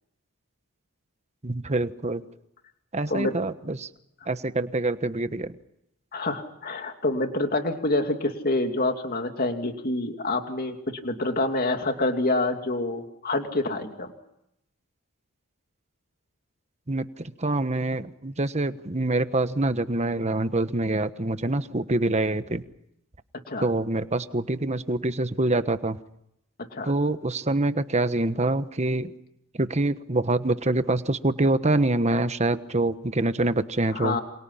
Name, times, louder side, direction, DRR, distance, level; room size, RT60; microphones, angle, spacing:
voice 1, 1.4-2.2 2.9-3.9 4.3-5.6 16.9-22.6 23.6-26.0 26.8-29.1 29.5-34.2, right 2 dB, 30° right, 11 dB, 1.2 m, -25 dB
voice 2, 6.1-14.1 23.5-23.7 26.7-26.9 33.9-34.2, left 2 dB, 40° left, 5 dB, 2.8 m, -27 dB
29.0 x 27.0 x 5.7 m, 0.80 s
head